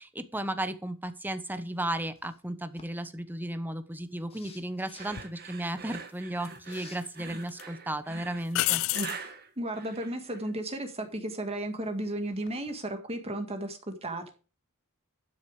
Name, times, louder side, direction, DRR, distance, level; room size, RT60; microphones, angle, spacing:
voice 1, 0.0-8.8, right 1 dB, 10° right, 11 dB, 1.0 m, -34 dB
sound 1, 2.2-2.4 2.8-2.9 4.3-5.1 6.6-7.0, left 4 dB, 25° left, 1.9 m, -51 dB
sound 2, 5.0-10.5, right 4 dB, 45° right, 2.0 m, -42 dB
sound 3, 5.2-5.3 6.4-7.1 7.5-7.6 8.5-9.2 12.3-12.7, left 16 dB, 65° left, 0.4 m, -30 dB
voice 2, 9.6-14.2, right 1 dB, 30° right, 6 dB, 1.9 m, -34 dB
12.5 x 6.7 x 5.0 m, 0.35 s
head